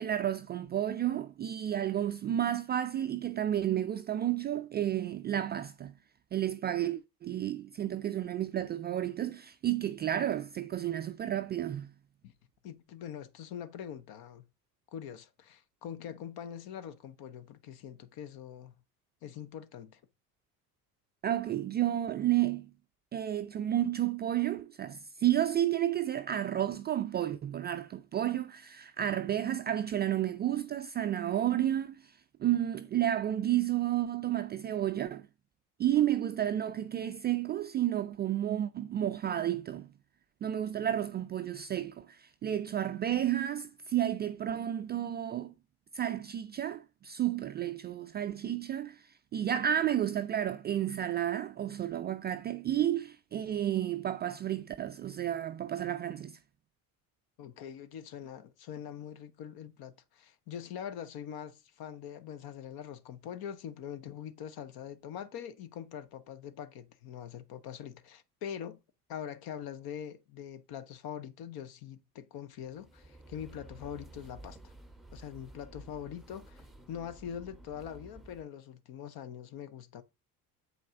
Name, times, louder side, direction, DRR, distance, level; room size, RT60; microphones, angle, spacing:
voice 1, 0.0-5.9 6.3-11.9 21.2-22.7 23.1-32.1 32.4-35.3 35.8-39.9 40.4-45.5 45.9-56.4, right 11 dB, 25° right, 0.4 m, -31 dB
voice 2, 12.6-14.5 14.9-18.7 19.2-20.0 57.4-68.8 69.1-74.7 75.1-80.0, left 9 dB, 50° left, 1.0 m, -43 dB
sound 1, 72.6-78.4, right 1 dB, ahead, 0.9 m, -52 dB
7.9 x 5.2 x 3.6 m
figure-of-eight pair, 60°, 48 cm